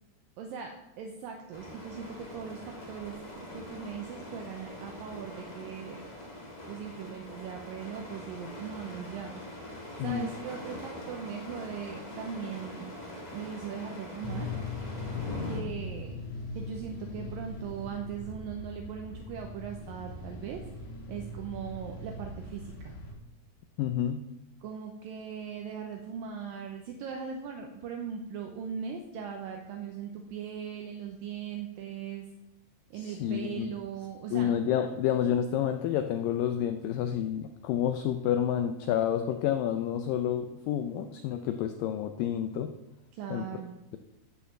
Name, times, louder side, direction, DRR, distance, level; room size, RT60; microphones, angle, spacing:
voice 1, 0.4-6.0 6.7-9.4 10.0-12.9 13.3-14.5 15.5-16.2 16.6-20.6 21.1-23.0 24.6-32.3 32.9-34.5 43.1-43.7, right 7 dB, 75° right, 3 dB, 2.3 m, -39 dB
sound 1, 1.5-15.6, left 1 dB, 30° left, 0.7 m, -43 dB
sound 2, 14.2-23.1, left 2 dB, 70° left, 4.5 m, -40 dB
voice 2, 23.8-24.2 32.9-33.7 34.3-42.7 43.3-43.5, left 10 dB, 85° left, 8 dB, 1.9 m, -29 dB
12.5 x 5.8 x 7.5 m, 0.95 s
omnidirectional pair, 4.7 m